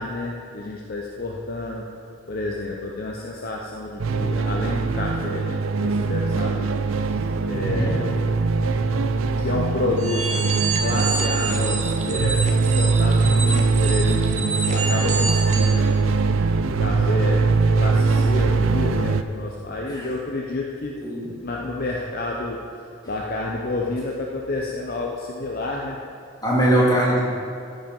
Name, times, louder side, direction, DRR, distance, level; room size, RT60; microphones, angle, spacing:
voice 1, 0.0-1.9 2.3-7.1 7.4-8.1 8.6-8.7 9.4-10.4 10.8-16.1 16.8-17.5 17.7-22.6 23.1-26.0, left 2 dB, 45° left, -1 dB, 0.7 m, -29 dB
sound 1, 4.0-19.2, right 4 dB, 75° right, 0.4 m, -21 dB
voice 2, 7.6-8.0 19.9-20.1 21.0-21.3 26.4-27.2, right 1 dB, 20° left, -5 dB, 2.2 m, -21 dB
sound 2, 10.0-15.8, right 4 dB, 35° right, 0.9 m, -28 dB
13.5 x 5.7 x 5.3 m, 2.4 s
head